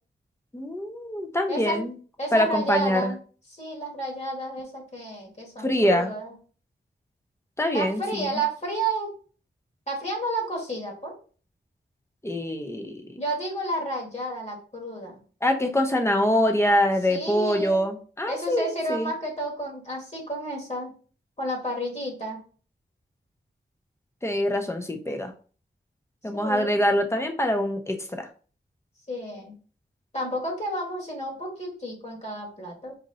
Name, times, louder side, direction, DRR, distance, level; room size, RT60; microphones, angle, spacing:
voice 1, 0.5-1.9 2.3-3.1 5.6-6.1 7.6-8.2 12.2-13.0 15.4-19.1 24.2-25.3 26.2-28.3, left 1 dB, 15° left, 5 dB, 0.7 m, -24 dB
voice 2, 1.5-1.8 2.2-3.2 3.5-6.3 7.7-9.1 9.9-11.1 13.2-15.2 17.1-17.8 18.3-20.9 21.4-22.4 26.3-26.8 29.1-29.5 30.1-32.9, right 1 dB, 35° left, -1 dB, 1.8 m, -31 dB
4.2 x 2.5 x 4.0 m, 0.40 s
wide cardioid pair, 80°, 19 cm